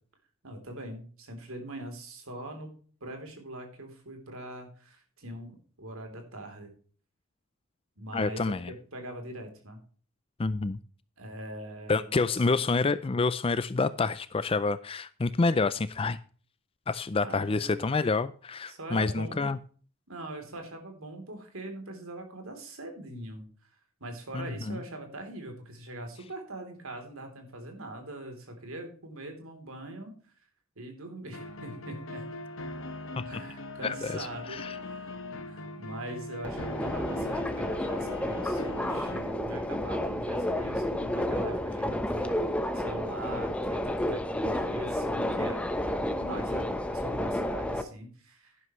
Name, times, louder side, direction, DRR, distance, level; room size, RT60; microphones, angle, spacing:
voice 1, 0.4-2.7 3.0-6.7 8.0-9.8 11.2-12.7 17.2-17.9 18.7-19.5 20.1-23.7 24.0-30.1 30.7-32.3 33.3-35.1 35.5-42.3 42.7-48.6, right 1 dB, 75° right, 5 dB, 3.4 m, -42 dB
voice 2, 8.1-8.7 10.4-10.8 11.9-16.2 16.9-19.6 24.3-24.8 33.2-33.3 33.8-34.8, left 3 dB, 25° left, 15 dB, 0.4 m, -28 dB
sound 1, 31.3-39.3, left 2 dB, 65° left, 1.4 m, -41 dB
Subway metro underground, 36.4-47.8, left 1 dB, 5° left, 0.9 m, -31 dB
11.0 x 11.0 x 3.1 m, 0.42 s
head